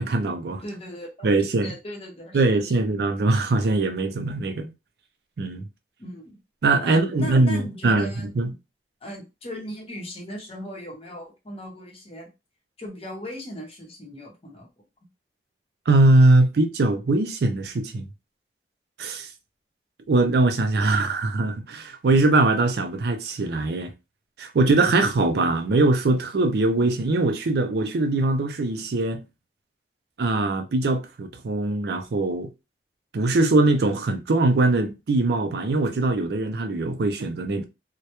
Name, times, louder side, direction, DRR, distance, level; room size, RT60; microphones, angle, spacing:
voice 1, 0.0-0.6 1.2-1.7 2.3-4.7 5.4-5.6 6.6-8.5 15.9-18.1 19.0-19.3 20.1-23.9 24.4-29.2 30.2-32.5 33.1-37.6, right 2 dB, 65° right, 0.4 m, -21 dB
voice 2, 0.6-1.3 1.6-2.7 6.0-6.4 6.8-8.6 9.0-12.3 12.8-14.7, equal, 35° left, 0.8 m, -38 dB
2.2 x 2.1 x 2.8 m
head